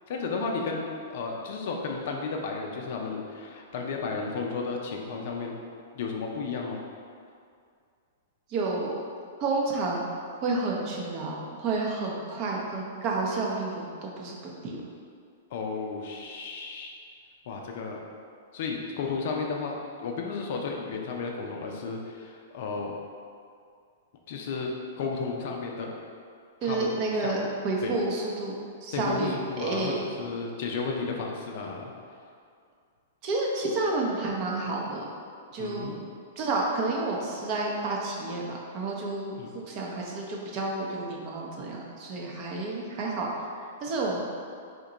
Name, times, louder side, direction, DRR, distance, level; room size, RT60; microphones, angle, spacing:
voice 1, 0.1-5.6 5.9-6.8 15.5-16.9 17.5-18.0 18.5-22.9 24.3-25.9 26.6-26.9 27.2-27.3 27.8-28.0 28.9-31.9 35.6-36.0 39.4-39.5, left 4 dB, 60° left, 1 dB, 0.4 m, -33 dB
voice 2, 8.5-8.9 9.4-10.1 10.4-14.8 26.6-30.0 33.2-35.1 35.5-36.0 36.4-43.3 43.8-44.2, right 3 dB, 40° right, -2 dB, 0.6 m, -30 dB
2.8 x 2.2 x 3.8 m, 2.3 s
hypercardioid pair, 125°, 0 cm